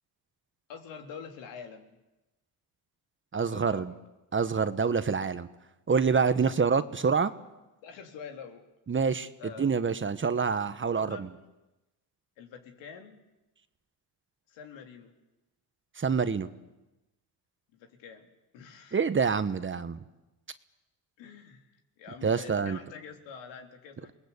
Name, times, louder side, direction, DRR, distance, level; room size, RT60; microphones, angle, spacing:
voice 1, 0.7-2.0 3.4-4.0 5.1-5.5 6.3-6.6 7.8-8.7 9.4-9.7 11.0-11.2 12.4-13.2 14.5-15.1 17.7-18.3 18.5-19.0 21.2-24.1, left 6 dB, 80° left, 4 dB, 3.4 m, -46 dB
voice 2, 3.3-3.9 4.3-5.5 5.9-7.3 8.9-9.3 9.6-11.3 16.0-16.5 18.9-20.0 22.2-22.8, right 5 dB, 25° right, 11 dB, 1.3 m, -26 dB
28.0 x 20.0 x 8.3 m, 1.0 s
supercardioid pair, 90°, 43 cm